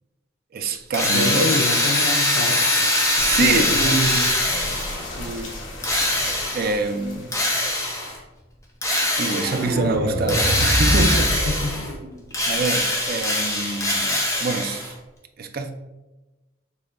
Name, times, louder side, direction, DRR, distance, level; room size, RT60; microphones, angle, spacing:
voice 1, 0.5-1.6 3.2-4.4 5.2-5.5 6.5-7.4 9.2-11.3 12.5-14.9 15.4-15.7, right 3 dB, 45° right, 0.4 m, -25 dB
Drill, 0.9-5.1 5.8-6.8 7.3-8.2 8.8-9.7 10.3-11.9 12.3-14.9, left 1 dB, 15° left, 0.7 m, -22 dB
voice 2, 1.0-2.9 3.4-4.0 4.5-4.6 11.4-11.9, left 3 dB, 90° left, 0.4 m, -27 dB
sound 1, 3.1-8.0, left 1 dB, 60° left, 1.1 m, -35 dB
sound 2, 9.4-12.4, equal, 65° right, 0.9 m, -25 dB
6.5 x 2.8 x 2.5 m
head